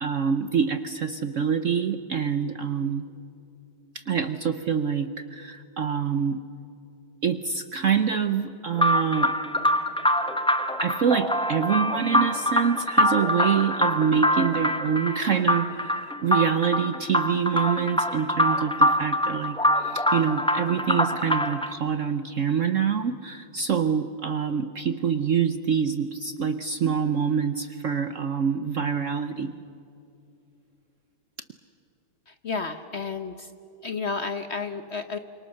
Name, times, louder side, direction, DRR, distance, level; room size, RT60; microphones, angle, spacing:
voice 1, 0.0-3.0 3.9-6.4 7.2-9.4 10.8-29.5, right 7 dB, 60° right, 11 dB, 0.9 m, -26 dB
sound 1, 8.8-21.7, equal, 5° left, 0.4 m, -24 dB
voice 2, 32.3-33.5 33.8-35.2, left 4 dB, 45° left, 9 dB, 0.9 m, -32 dB
28.5 x 26.0 x 6.5 m, 2.8 s
omnidirectional pair, 2.0 m